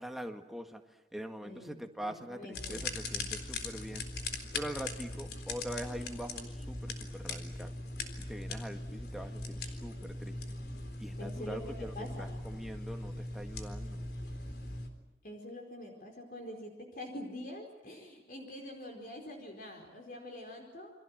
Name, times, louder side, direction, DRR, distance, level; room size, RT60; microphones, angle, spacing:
voice 1, 0.0-4.1 4.5-7.7 8.2-10.4 11.0-14.1, equal, ahead, 5 dB, 1.8 m, -43 dB
voice 2, 1.4-2.8 11.2-12.3 15.2-20.9, left 1 dB, 50° left, 2 dB, 4.6 m, -45 dB
sound 1, 2.5-14.9, left 2 dB, 70° left, 3.9 m, -40 dB
29.5 x 24.5 x 7.5 m, 1.0 s
head